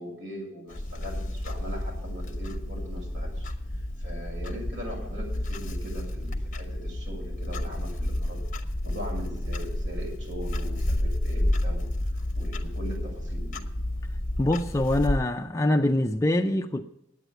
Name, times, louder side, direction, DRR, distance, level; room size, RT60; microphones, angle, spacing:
voice 1, 0.0-3.5 4.0-8.4 8.8-11.9 12.1-13.6, equal, 70° right, 6.8 m, -40 dB
Clock, 0.7-15.2, left 1 dB, 45° left, 1.1 m, -31 dB
voice 2, 14.4-16.8, left 1 dB, 15° left, 0.4 m, -24 dB
9.5 x 9.1 x 9.0 m
head